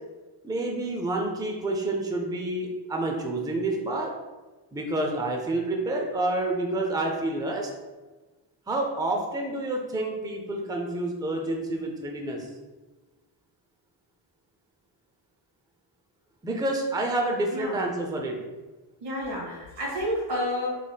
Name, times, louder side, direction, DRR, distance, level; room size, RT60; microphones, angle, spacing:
voice 1, 0.4-4.1 4.7-7.7 8.7-12.5 16.4-18.4, right 2 dB, 10° right, 1 dB, 0.5 m, -28 dB
voice 2, 19.0-20.7, left 1 dB, 60° right, -4 dB, 1.5 m, -30 dB
3.7 x 3.4 x 2.2 m, 1.2 s
cardioid pair, 70°, 47 cm